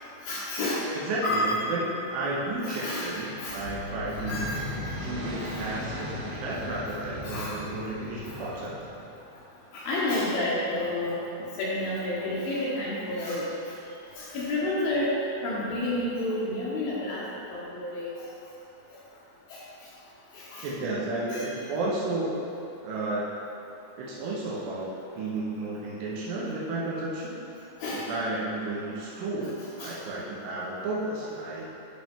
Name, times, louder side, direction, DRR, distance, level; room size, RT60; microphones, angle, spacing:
voice 1, 0.2-0.8 1.2-1.6 2.6-3.6 4.3-4.6 5.6-5.7 7.2-7.5 8.3-8.6 9.7-11.2 11.6-13.5 14.2-15.1 15.4-17.2 17.5-18.1 19.5-19.6 20.3-20.7 21.3-21.5 27.8-28.0 29.8-29.9, left 1 dB, 75° left, -7 dB, 2.2 m, -30 dB
voice 2, 0.9-4.4 5.0-8.8 20.6-22.5 22.8-23.4 24.0-27.6 28.1-31.7, right 2 dB, 90° right, -6 dB, 1.9 m, -32 dB
sound 1, 3.1-9.2, left 1 dB, 60° right, 2.1 m, -37 dB
11.0 x 4.3 x 3.6 m, 2.8 s
omnidirectional pair, 5.5 m